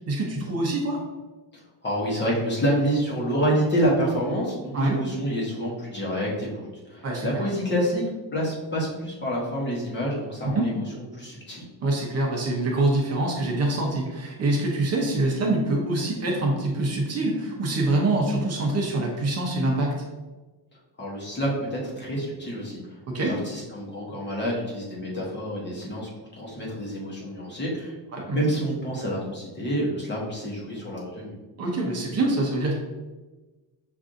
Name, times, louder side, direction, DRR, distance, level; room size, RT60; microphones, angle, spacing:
voice 1, 0.1-1.0 4.7-5.0 7.0-7.3 10.4-10.6 11.8-19.9 23.1-23.3 28.1-28.4 31.6-32.7, right 2 dB, 40° right, -1 dB, 0.7 m, -25 dB
voice 2, 1.8-8.0 8.3-11.7 21.0-28.0 28.3-31.3, equal, 25° left, -4 dB, 0.9 m, -28 dB
6.0 x 2.5 x 2.5 m, 1.2 s
cardioid pair, 165°, 40 cm